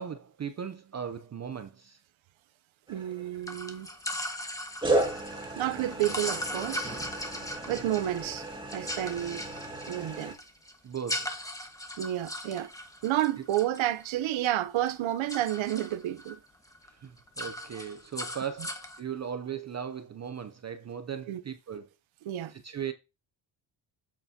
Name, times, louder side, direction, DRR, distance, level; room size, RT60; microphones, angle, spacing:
voice 1, 0.0-2.0 10.8-11.3 16.9-21.9 22.5-22.9, right 8 dB, 35° right, 0.6 m, -38 dB
sound 1, 2.9-3.5 4.8-10.3, right 2 dB, 10° right, 2.0 m, -34 dB
voice 2, 2.9-3.9 5.6-6.9 7.7-8.5 8.7-9.4 9.9-10.3 12.0-12.7 13.0-16.4 21.3-21.4 22.2-22.5, right 13 dB, 70° right, 0.8 m, -30 dB
sound 2, 3.4-14.5 14.8-16.3 16.7-16.9 17.2-19.0, left 1 dB, 5° left, 1.4 m, -39 dB
8.1 x 6.8 x 2.8 m
cardioid pair, 105°, 49 cm